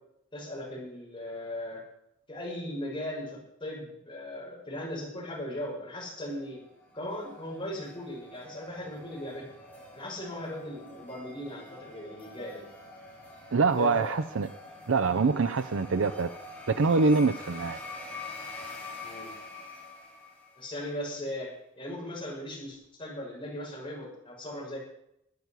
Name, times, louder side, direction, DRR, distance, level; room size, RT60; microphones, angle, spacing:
voice 1, 0.3-1.8 2.3-6.6 6.9-9.5 9.9-12.6 13.8-14.1 19.0-19.3 20.6-21.5 21.8-24.8, left 1 dB, 25° left, -4 dB, 6.3 m, -38 dB
sound 1, 6.2-20.8, left 2 dB, 10° left, 6.1 m, -46 dB
voice 2, 13.5-14.5 14.9-16.3 16.7-17.8, right 4 dB, 70° right, 11 dB, 0.6 m, -25 dB
12.0 x 9.3 x 8.3 m, 0.80 s
head